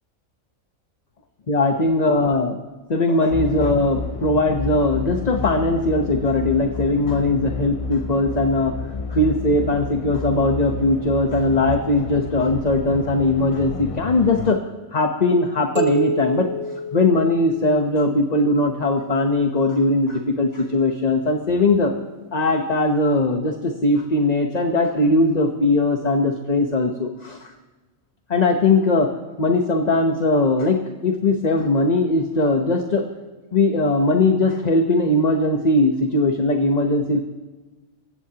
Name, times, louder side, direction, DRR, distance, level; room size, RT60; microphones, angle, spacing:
voice 1, 1.5-2.5 2.9-8.7 9.1-14.6 14.9-16.5 16.9-21.9 22.3-27.5 28.3-29.1 29.4-33.1 33.5-37.2, left 2 dB, 35° left, 4 dB, 1.0 m, -20 dB
sound 1, 3.3-14.5, left 5 dB, 60° left, 0.3 m, -30 dB
sound 2, 15.8-18.2, right 2 dB, 70° right, 6.7 m, -28 dB
27.0 x 15.5 x 2.9 m, 1.3 s
omnidirectional pair, 1.4 m